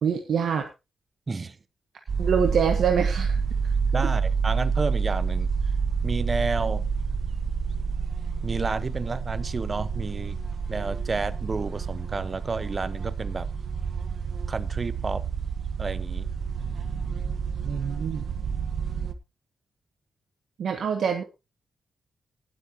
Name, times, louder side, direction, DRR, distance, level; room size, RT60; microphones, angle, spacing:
voice 1, 0.0-0.6 2.2-3.4 17.6-18.3 20.6-21.2, right 7 dB, 70° right, 4 dB, 1.3 m, -25 dB
voice 2, 1.3-1.6 3.9-5.5 6.0-6.9 8.4-10.4 10.7-13.5 14.5-15.2 15.8-16.3, right 4 dB, 25° right, 15 dB, 0.7 m, -30 dB
sound 1, 2.1-19.1, right 5 dB, 50° right, 1.0 m, -28 dB
19.5 x 8.2 x 3.0 m, 0.28 s
wide cardioid pair, 160°, 0 cm